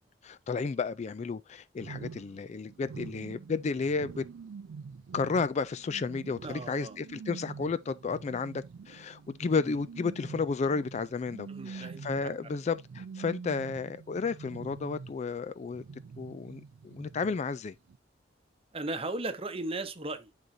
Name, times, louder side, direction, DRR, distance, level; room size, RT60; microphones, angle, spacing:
voice 1, 0.2-4.2 5.1-15.8 16.2-17.7, left 4 dB, 35° left, 0.3 m, -32 dB
sound 1, 1.8-15.4 15.7-17.6 17.9-18.0, right 5 dB, 80° right, 0.4 m, -46 dB
voice 2, 6.4-7.0 11.5-12.3 18.7-20.4, right 2 dB, 30° right, 0.9 m, -37 dB
11.0 x 3.9 x 2.6 m
head